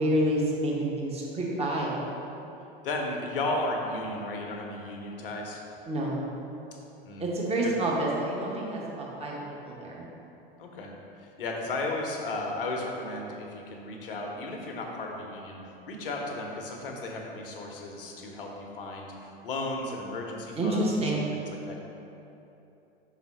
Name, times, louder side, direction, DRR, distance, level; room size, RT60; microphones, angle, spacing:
voice 1, 0.0-1.9 5.9-6.2 7.2-9.3 9.6-10.1 20.5-21.3, right 1 dB, 20° right, -4 dB, 1.2 m, -28 dB
voice 2, 2.8-5.6 7.1-7.3 7.6-7.8 10.6-10.9 11.2-21.0 21.3-21.7, left 2 dB, 70° left, 1 dB, 0.9 m, -34 dB
5.8 x 4.1 x 4.2 m, 2.9 s
figure-of-eight pair, 85°, 29 cm